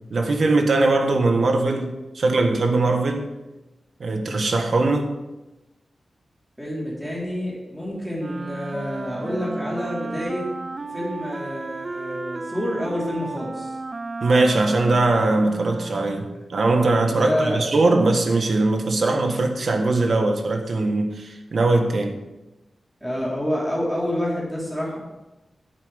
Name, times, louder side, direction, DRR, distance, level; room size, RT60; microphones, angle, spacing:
voice 1, 0.1-3.3 4.0-5.1 14.2-22.2, right 2 dB, 55° right, 4 dB, 1.4 m, -21 dB
voice 2, 6.6-10.4 10.8-13.8 17.1-17.6 23.0-25.0, equal, 5° right, -5 dB, 3.9 m, -28 dB
Wind instrument woodwind instrument, 8.2-16.4, right 3 dB, 35° right, 0.4 m, -34 dB
10.5 x 8.4 x 5.2 m, 1.0 s
wide cardioid pair, 150°, 0 cm